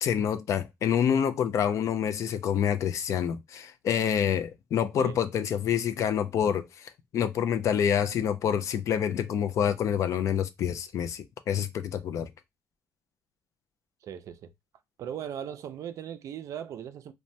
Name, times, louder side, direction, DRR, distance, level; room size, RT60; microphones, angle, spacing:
voice 1, 0.0-12.3, left 8 dB, 55° left, 0.4 m, -27 dB
voice 2, 14.0-14.5 15.0-17.1, right 9 dB, 60° right, 0.4 m, -38 dB
3.0 x 2.2 x 2.6 m
cardioid pair, 145°, 6 cm